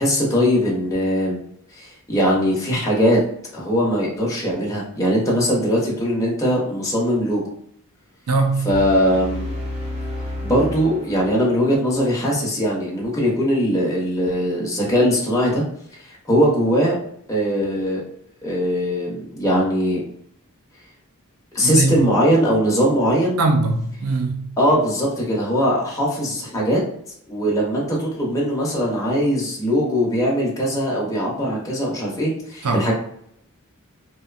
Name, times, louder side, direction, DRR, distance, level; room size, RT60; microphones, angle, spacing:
voice 1, 0.0-1.4 1.7-3.2 3.5-7.5 8.6-9.5 10.4-15.6 16.0-16.9 17.3-18.0 18.4-20.0 21.5-23.4 24.6-26.8 27.3-32.9, equal, 15° left, 0.6 m, -20 dB
voice 2, 8.3-8.8 21.6-22.1 23.4-24.5 32.6-32.9, right 3 dB, 80° right, 0.4 m, -21 dB
sound 1, 8.7-11.7, left 1 dB, 25° right, 0.5 m, -31 dB
2.6 x 2.2 x 2.3 m
head